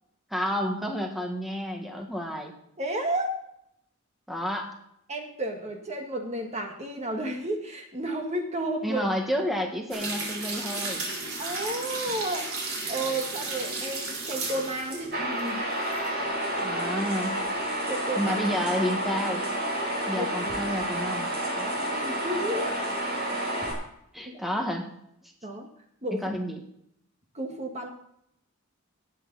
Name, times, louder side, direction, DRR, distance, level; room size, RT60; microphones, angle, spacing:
voice 1, 0.3-2.5 4.3-4.7 8.8-11.0 16.6-17.4 18.2-19.4 20.1-21.3 24.1-24.9 26.1-26.6, equal, ahead, 1 dB, 1.6 m, -30 dB
voice 2, 2.8-3.4 5.1-9.0 11.4-15.6 17.9-18.4 20.1-20.3 21.5-22.9 24.2-24.3 25.4-25.7 26.0-26.2 27.3-27.9, right 1 dB, 30° right, 3 dB, 1.8 m, -32 dB
sound 1, 9.9-16.1 16.5-16.6, right 3 dB, 75° right, 4.2 m, -34 dB
sound 2, 15.1-23.7, right 1 dB, 50° right, 5.3 m, -30 dB
18.0 x 8.5 x 4.1 m, 0.75 s
head